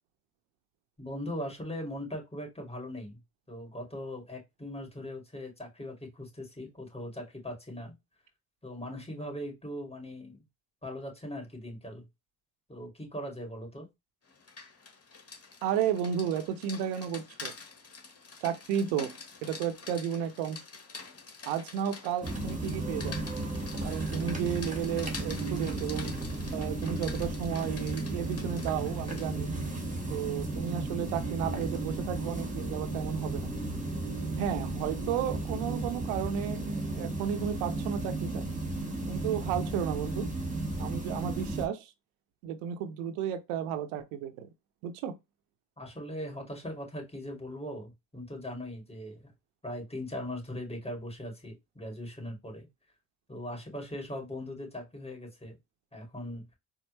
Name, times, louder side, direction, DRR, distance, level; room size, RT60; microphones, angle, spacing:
voice 1, 1.0-3.2 3.5-7.9 8.6-10.4 10.8-12.1 12.7-13.9 45.8-49.3 49.6-52.7 53.3-55.6 55.9-56.6, left 1 dB, 10° left, 2.3 m, -40 dB
Rain, 14.3-29.4, left 4 dB, 30° left, 1.3 m, -47 dB
voice 2, 15.6-17.5 18.4-19.1 19.4-20.6 21.5-23.1 23.8-26.1 26.5-29.5 30.1-33.5 34.4-38.4 39.1-40.3 40.8-41.9 42.4-44.5 44.8-45.1, right 9 dB, 85° right, 0.7 m, -33 dB
ambient with trafic a blowing wind, 22.2-41.7, right 2 dB, 15° right, 1.5 m, -34 dB
4.3 x 2.1 x 3.1 m
supercardioid pair, 65°, 48 cm